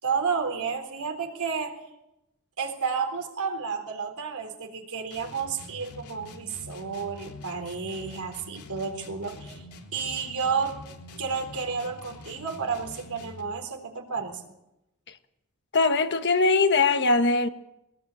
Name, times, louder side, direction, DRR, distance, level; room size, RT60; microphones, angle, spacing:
voice 1, 0.0-1.9 2.6-9.6 9.9-10.8 11.2-14.4, right 5 dB, 80° right, 3.9 m, -31 dB
sound 1, 5.1-13.6, left 2 dB, 85° left, 3.7 m, -45 dB
voice 2, 15.7-17.5, left 3 dB, 55° left, 1.4 m, -21 dB
21.5 x 18.5 x 8.4 m
head